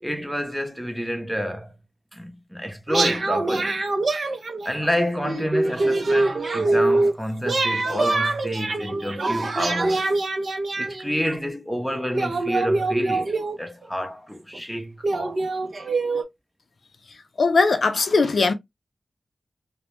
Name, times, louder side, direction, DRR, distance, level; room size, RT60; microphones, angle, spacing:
voice 1, 0.0-1.7 2.1-3.8 4.6-10.1 10.8-15.4, equal, ahead, 0.6 m, -29 dB
sound 1, 2.9-4.9 5.2-7.1 7.5-11.4 12.1-13.8 14.5-14.6 15.0-16.2, right 2 dB, 65° right, 0.5 m, -24 dB
voice 2, 17.1-18.5, left 4 dB, 65° left, 0.4 m, -20 dB
2.2 x 2.1 x 2.9 m
wide cardioid pair, 85°, 0 cm